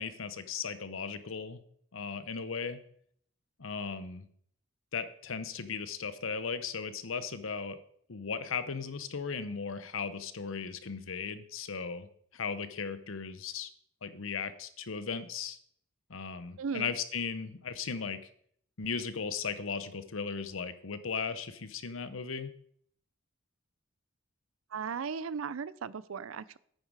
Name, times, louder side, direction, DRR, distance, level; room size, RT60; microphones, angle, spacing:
voice 1, 0.0-1.6 1.9-2.8 3.6-4.3 4.9-7.8 8.1-13.7 14.0-15.6 16.1-18.3 18.8-22.5, left 5 dB, 75° left, 12 dB, 0.9 m, -37 dB
voice 2, 16.6-16.9 24.7-26.6, right 6 dB, 80° right, 19 dB, 0.5 m, -36 dB
9.2 x 9.0 x 4.8 m, 0.63 s
head